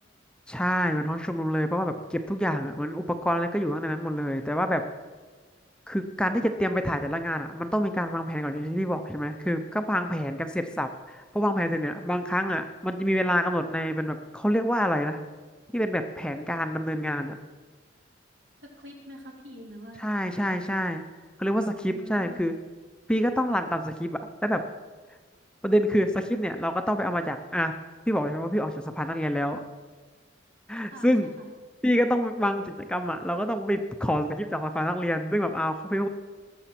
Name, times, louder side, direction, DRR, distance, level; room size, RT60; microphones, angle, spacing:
voice 1, 0.5-4.8 5.9-15.2 15.7-17.4 20.0-21.0 21.4-22.5 23.1-24.6 25.6-27.7 28.1-29.6 30.7-31.3 31.8-36.1, equal, 5° left, 7 dB, 0.5 m, -27 dB
voice 2, 18.6-20.6 21.9-22.5 30.8-31.5, equal, 75° right, 0 dB, 3.1 m, -45 dB
19.0 x 7.1 x 5.9 m, 1.4 s
head